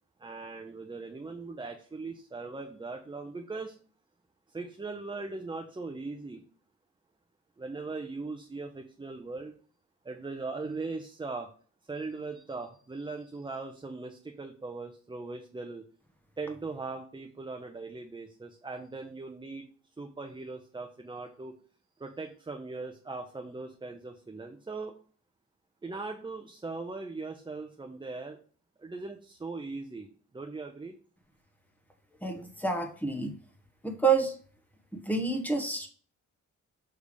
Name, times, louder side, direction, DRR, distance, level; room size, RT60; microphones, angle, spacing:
voice 1, 0.2-3.7 4.5-6.4 7.6-9.5 10.0-11.5 11.9-15.8 16.4-19.7 20.0-21.5 22.0-24.9 25.8-28.4 28.8-30.9, right 3 dB, 15° right, 3 dB, 0.6 m, -39 dB
voice 2, 32.2-33.3 33.8-34.3 34.9-35.9, right 4 dB, 5° left, 4 dB, 1.2 m, -28 dB
6.7 x 3.4 x 5.1 m, 0.43 s
cardioid pair, 125°, 31 cm